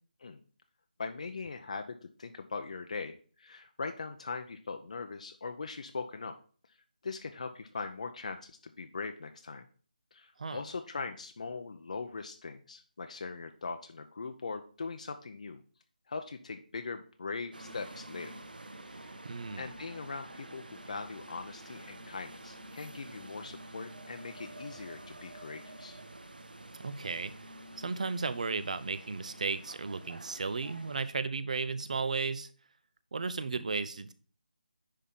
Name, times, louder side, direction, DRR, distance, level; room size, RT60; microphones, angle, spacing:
voice 1, 1.0-6.3 7.0-9.6 10.1-15.6 16.1-18.4 18.9-19.2 19.5-26.0, left 4 dB, 50° left, 6 dB, 0.7 m, -41 dB
sound 1, 17.5-31.1, right 1 dB, 85° right, 1.3 m, -49 dB
voice 2, 19.2-19.7 26.8-27.3 27.8-32.5 33.1-34.1, right 4 dB, 50° right, 13 dB, 0.6 m, -34 dB
10.0 x 3.6 x 5.6 m, 0.42 s
figure-of-eight pair, 165°, 5 cm